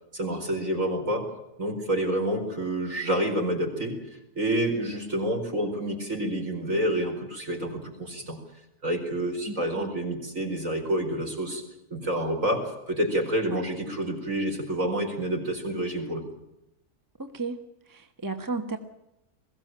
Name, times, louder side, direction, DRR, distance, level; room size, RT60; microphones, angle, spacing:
voice 1, 0.1-1.2 1.6-4.0 4.3-8.4 8.8-11.6 11.9-16.2, right 1 dB, 55° right, 2 dB, 5.1 m, -28 dB
voice 2, 9.5-9.9 13.5-13.6 17.2-17.6 17.9-18.8, right 3 dB, 15° right, 6 dB, 1.2 m, -34 dB
21.5 x 16.0 x 8.9 m, 0.90 s
omnidirectional pair, 1.7 m